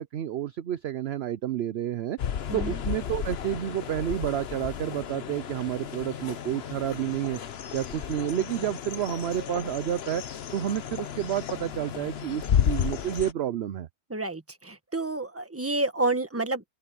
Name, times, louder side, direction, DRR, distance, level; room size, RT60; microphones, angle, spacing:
voice 1, 0.0-2.2 2.5-7.4 7.7-10.2 10.5-13.9, right 11 dB, 60° right, 0.7 m, -30 dB
sound 1, 2.2-13.3, left 8 dB, 50° left, 0.9 m, -32 dB
voice 2, 2.5-2.8 14.1-16.6, right 2 dB, 10° right, 1.3 m, -29 dB
omnidirectional pair, 1.6 m